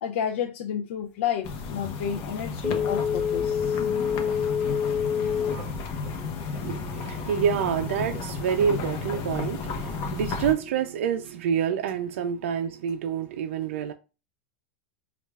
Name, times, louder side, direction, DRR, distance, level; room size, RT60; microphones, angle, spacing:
voice 1, 0.0-3.9 4.3-4.5, left 8 dB, 65° left, 0.5 m, -31 dB
sound 1, 1.4-10.5, left 4 dB, 40° left, 0.7 m, -33 dB
Telephone, 2.6-5.7 6.1-6.2, left 7 dB, 5° right, 0.5 m, -26 dB
Walk footsteps, 3.7-10.7, right 4 dB, 45° right, 0.9 m, -47 dB
voice 2, 6.6-13.9, right 8 dB, 80° right, 0.4 m, -27 dB
5.2 x 2.4 x 2.3 m
supercardioid pair, 150°, 7 cm